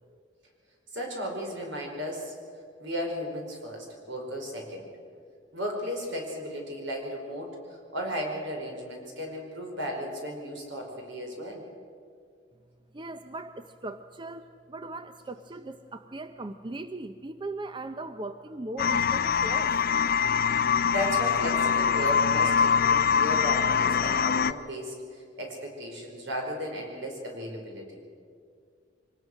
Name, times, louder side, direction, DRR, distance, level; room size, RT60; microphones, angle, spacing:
voice 1, 0.9-2.3 2.8-4.9 5.5-11.6 20.9-27.9, equal, 70° right, 1 dB, 5.1 m, -35 dB
voice 2, 12.9-19.8, right 2 dB, 25° right, 9 dB, 0.6 m, -39 dB
sound 1, 18.8-24.5, left 7 dB, 50° left, 0.5 m, -24 dB
24.0 x 19.5 x 6.3 m, 2.2 s
head